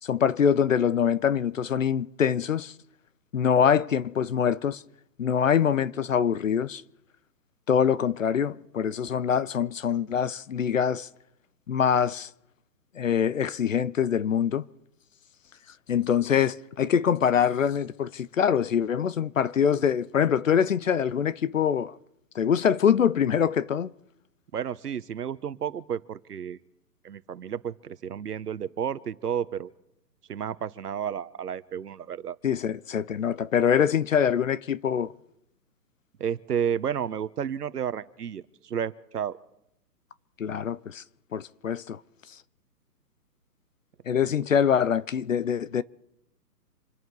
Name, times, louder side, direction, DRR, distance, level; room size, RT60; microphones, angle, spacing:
voice 1, 0.0-2.7 3.3-4.8 5.2-6.8 7.7-11.1 11.7-12.3 13.0-14.6 15.9-21.9 22.3-23.9 32.4-35.1 40.4-41.0 41.3-42.0 44.1-45.8, left 8 dB, 55° left, 0.6 m, -24 dB
voice 2, 24.5-26.6 27.0-29.7 30.3-32.4 36.2-39.4 44.2-44.3, right 8 dB, 70° right, 1.1 m, -31 dB
27.0 x 10.5 x 4.8 m
hypercardioid pair, 165°, 48 cm